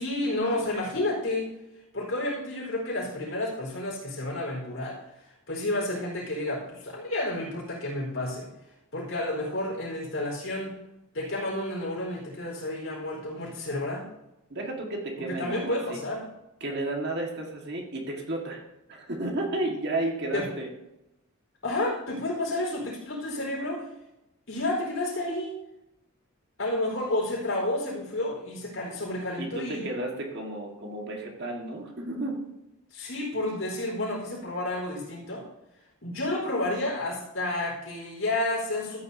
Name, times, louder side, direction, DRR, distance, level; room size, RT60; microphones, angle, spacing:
voice 1, 0.0-1.5 1.9-8.5 8.9-10.8 11.1-14.0 15.2-16.2 20.3-20.5 21.6-23.9 24.5-25.5 26.6-29.8 32.9-35.4 36.0-39.0, left 1 dB, 65° left, -2 dB, 4.3 m, -30 dB
voice 2, 14.5-16.0 16.6-18.6 18.9-20.7 29.4-32.4, right 2 dB, 50° right, 0 dB, 1.8 m, -32 dB
14.0 x 9.1 x 2.8 m, 0.93 s
head